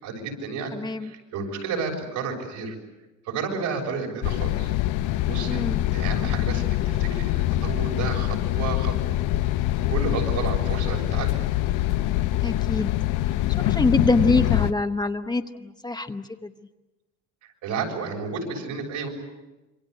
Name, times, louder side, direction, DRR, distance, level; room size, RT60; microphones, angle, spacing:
voice 1, 0.0-0.8 1.0-2.8 3.3-4.7 5.3-5.6 5.9-9.0 9.9-11.4 17.6-19.1, right 5 dB, 80° right, 2 dB, 6.9 m, -31 dB
voice 2, 0.7-1.1 5.5-5.9 12.4-12.9 13.6-16.5, left 3 dB, 15° left, 7 dB, 0.9 m, -25 dB
sound 1, 4.2-14.7, left 14 dB, 85° left, 0.9 m, -24 dB
26.5 x 24.5 x 8.1 m, 1.1 s
cardioid pair, 150°, 30 cm